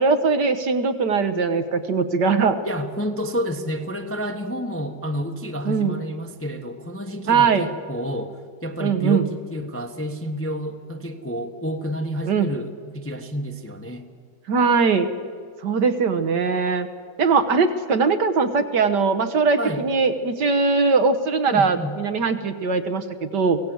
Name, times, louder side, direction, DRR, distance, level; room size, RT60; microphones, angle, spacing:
voice 1, 0.0-2.6 5.6-6.0 7.2-7.7 8.8-9.2 12.3-12.5 14.5-15.1 15.6-16.9 17.2-23.6, right 4 dB, 60° right, 8 dB, 1.7 m, -20 dB
voice 2, 2.6-14.0 19.6-19.8 21.5-21.9, equal, 10° left, 4 dB, 1.0 m, -29 dB
24.0 x 17.5 x 7.9 m, 2.1 s
omnidirectional pair, 2.2 m